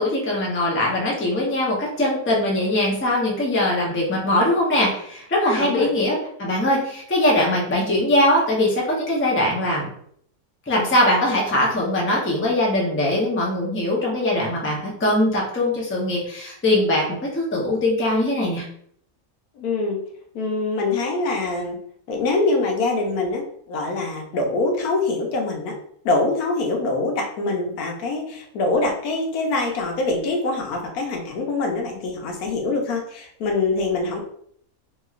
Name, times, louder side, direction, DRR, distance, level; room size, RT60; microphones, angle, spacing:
voice 1, 0.0-9.9 10.7-18.6, left 1 dB, 15° left, -3 dB, 0.4 m, -21 dB
voice 2, 5.6-5.9 19.6-20.0 20.3-21.8 22.1-25.7 26.0-34.2, left 3 dB, 85° left, 1 dB, 1.2 m, -24 dB
2.9 x 2.8 x 2.4 m, 0.65 s
omnidirectional pair, 1.5 m